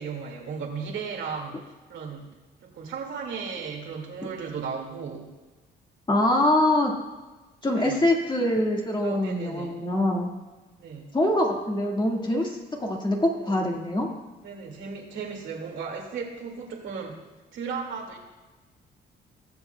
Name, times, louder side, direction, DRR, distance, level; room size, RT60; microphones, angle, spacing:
voice 1, 0.0-1.6 1.9-2.3 2.6-5.3 7.7-8.0 9.0-9.8 10.8-11.2 13.4-13.5 14.4-17.2 17.5-18.2, right 5 dB, 75° right, 0 dB, 2.0 m, -35 dB
voice 2, 6.1-6.9 7.6-10.3 11.1-14.1, left 1 dB, 20° left, 0 dB, 1.7 m, -24 dB
19.0 x 7.1 x 2.2 m, 1.2 s
cardioid pair, 90°, 20 cm